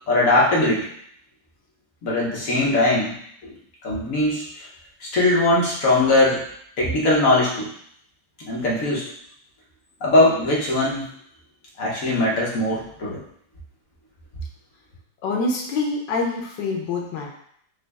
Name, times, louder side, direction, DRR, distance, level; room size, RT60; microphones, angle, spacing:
voice 1, 0.1-0.9 2.0-3.1 3.4-3.5 3.8-4.7 5.0-6.4 6.8-7.7 8.5-9.1 10.0-11.0 11.8-13.2, left 2 dB, 50° left, -5 dB, 1.4 m, -20 dB
voice 2, 15.2-17.3, left 3 dB, 75° left, 1 dB, 1.5 m, -25 dB
5.3 x 2.3 x 3.4 m, 0.67 s
omnidirectional pair, 2.0 m